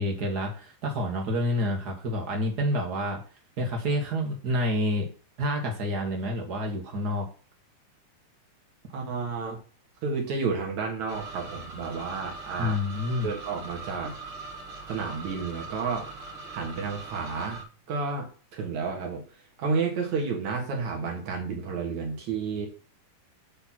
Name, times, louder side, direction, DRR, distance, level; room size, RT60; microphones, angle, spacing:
voice 1, 0.0-3.2 3.6-5.1 5.4-7.3 12.6-13.3, left 1 dB, 85° right, 1 dB, 0.8 m, -28 dB
voice 2, 8.9-9.6 10.0-12.8 13.2-14.1 14.9-16.1 16.5-22.7, right 4 dB, 60° right, 1 dB, 2.7 m, -31 dB
sound 1, 11.1-17.6, right 3 dB, 35° right, 3.1 m, -41 dB
8.7 x 4.1 x 5.9 m, 0.38 s
omnidirectional pair, 4.0 m